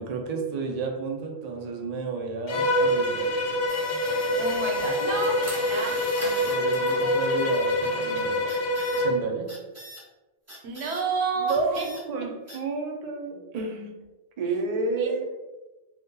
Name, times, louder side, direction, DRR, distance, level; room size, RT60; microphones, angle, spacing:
voice 1, 0.0-3.4 5.9-6.1 6.4-8.5 9.0-9.5 11.4-11.8 12.1-14.0 14.4-15.2, right 4 dB, 50° right, 1 dB, 0.5 m, -31 dB
Bowed string instrument, 2.5-9.2, left 1 dB, 65° left, 0.7 m, -25 dB
sound 1, 3.7-8.0 8.5-9.0 9.5-10.0 10.5-11.0 11.5-12.0 12.5-12.6, right 1 dB, 15° right, 0.8 m, -40 dB
voice 2, 4.3-5.4 5.6-6.3 10.6-11.9 15.0-15.2, right 4 dB, 90° right, 1 dB, 0.9 m, -30 dB
2.7 x 2.3 x 3.6 m, 1.1 s
omnidirectional pair, 1.1 m